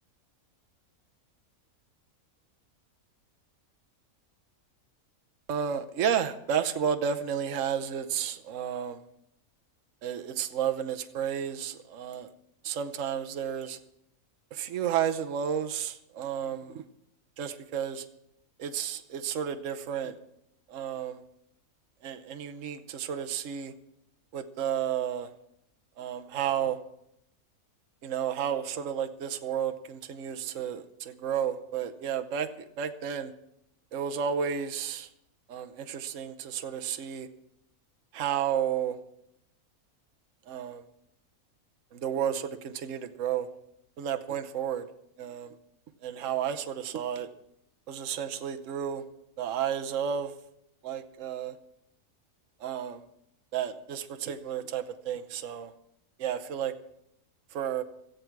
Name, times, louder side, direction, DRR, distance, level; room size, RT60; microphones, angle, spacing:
voice 1, 5.5-9.0 10.0-12.3 12.6-13.8 14.5-16.8 17.4-18.1 18.6-20.2 20.7-21.2 22.0-23.7 24.3-25.3 26.0-26.8 28.0-33.3 33.9-35.1 35.5-37.3 38.1-39.0 40.5-40.8 41.9-43.5 44.0-44.8 45.2-45.6 46.0-47.3 47.9-49.0 49.4-50.3 50.8-51.6 52.6-53.1 53.5-55.7 56.2-56.7 57.5-57.8, right 8 dB, 60° right, 7 dB, 1.2 m, -32 dB
17.0 x 13.5 x 4.7 m, 0.78 s
omnidirectional pair, 1.5 m